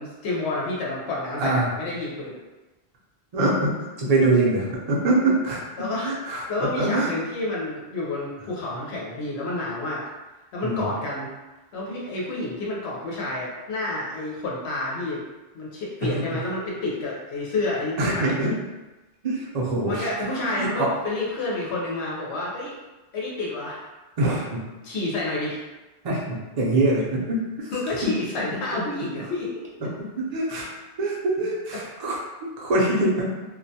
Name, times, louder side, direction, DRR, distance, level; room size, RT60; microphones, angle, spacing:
voice 1, 0.0-2.4 5.8-10.0 10.5-11.3 11.7-15.2 15.5-18.5 19.8-22.7 23.1-23.8 24.8-25.6 27.7-29.5 31.7-31.8, left 2 dB, 85° left, -4 dB, 0.9 m, -29 dB
voice 2, 1.4-1.7 3.3-3.7 4.0-5.6 6.0-6.4 6.8-7.1 10.6-10.9 16.0-16.4 18.0-18.5 19.2-20.1 20.6-20.9 24.2-24.6 26.0-27.7 28.0-28.1 29.8-29.9 30.2-30.7 31.0-32.2 32.6-33.3, right 2 dB, 45° right, -4 dB, 0.6 m, -23 dB
2.3 x 2.1 x 2.6 m, 1.1 s
omnidirectional pair, 1.1 m